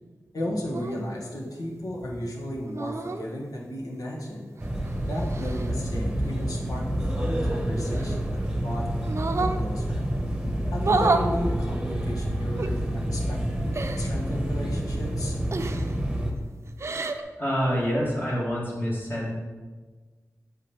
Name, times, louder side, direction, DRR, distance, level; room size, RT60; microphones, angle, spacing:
voice 1, 0.3-4.5 5.1-8.9 9.2-10.0 10.7-15.4, left 1 dB, 85° left, -2 dB, 1.5 m, -34 dB
sound 1, 0.7-1.0 2.7-3.3 4.6-5.7 7.8-8.5 9.0-9.6 10.8-11.3 12.6-12.7 13.7-14.1 15.5-16.0 16.7-17.2, right 3 dB, 50° right, 0.5 m, -29 dB
sound 2, 4.6-16.3, right 1 dB, 10° right, 1.0 m, -28 dB
voice 2, 17.4-19.3, equal, 35° left, -5 dB, 2.0 m, -26 dB
7.4 x 4.9 x 4.4 m, 1.4 s
wide cardioid pair, 75°, 6 cm